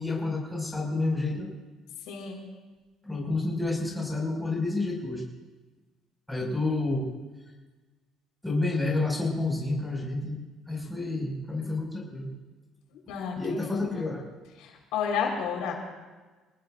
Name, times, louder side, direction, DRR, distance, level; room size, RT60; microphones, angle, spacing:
voice 1, 0.0-1.5 3.0-5.2 6.3-7.1 8.4-10.4 10.7-12.3 13.4-14.2, left 2 dB, 5° left, -3 dB, 5.8 m, -29 dB
voice 2, 2.1-2.4 12.9-13.8 14.6-15.7, left 6 dB, 90° left, 0 dB, 4.3 m, -31 dB
27.5 x 19.0 x 2.6 m, 1.3 s
cardioid pair, 135°, 0 cm